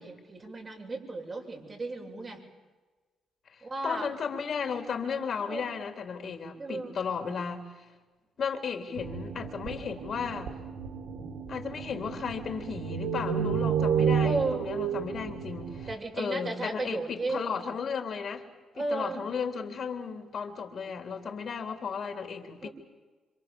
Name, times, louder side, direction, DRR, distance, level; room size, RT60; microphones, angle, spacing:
voice 1, 0.0-2.4 3.6-4.1 5.4-5.7 6.5-6.9 14.2-14.7 15.9-17.5 18.7-19.2 22.6-22.7, right 3 dB, 35° right, 0 dB, 7.4 m, -34 dB
voice 2, 3.5-7.9 8.4-10.5 11.5-15.9 16.2-18.4 18.7-22.7, left 6 dB, 55° left, 5 dB, 3.5 m, -35 dB
sound 1, 9.0-15.9, right 7 dB, 85° right, 3.2 m, -31 dB
27.5 x 26.5 x 7.2 m, 1.3 s
cardioid pair, 90°, 0 cm